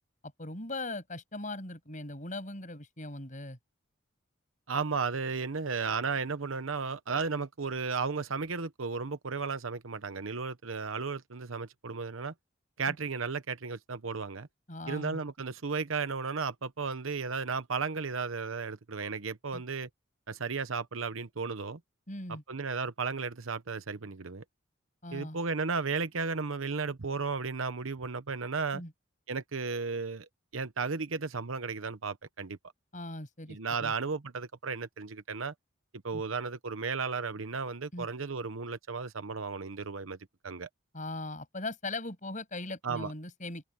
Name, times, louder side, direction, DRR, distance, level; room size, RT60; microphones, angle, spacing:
voice 1, 0.4-3.6 12.9-13.0 14.7-15.2 19.5-19.6 22.1-22.4 25.0-25.4 28.7-28.9 32.9-33.9 36.1-36.2 37.9-38.1 40.9-43.7, left 2 dB, 40° left, 7.6 m, -39 dB
voice 2, 4.7-12.3 12.8-14.5 14.9-19.9 20.3-21.8 22.3-24.4 25.1-28.8 29.3-30.3 30.5-32.6 33.5-35.5 36.0-40.2 40.4-40.7 42.8-43.1, right 4 dB, 90° right, 1.0 m, -34 dB
head